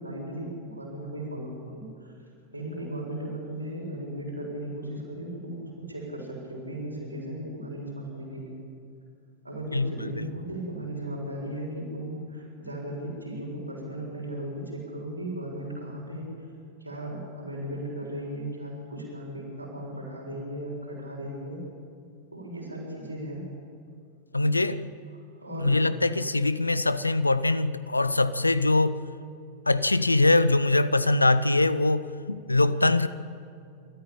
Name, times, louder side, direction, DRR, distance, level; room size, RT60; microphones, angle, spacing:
voice 1, 0.0-2.1 2.5-8.6 9.4-16.3 16.8-21.6 22.3-23.5 25.4-25.9, right 1 dB, 85° right, -2 dB, 6.8 m, -36 dB
voice 2, 9.7-10.3 24.3-24.8 25.6-29.0 29.7-33.1, left 2 dB, 85° left, 16 dB, 0.8 m, -23 dB
27.5 x 14.0 x 8.9 m, 2.4 s
figure-of-eight pair, 90°, 0 cm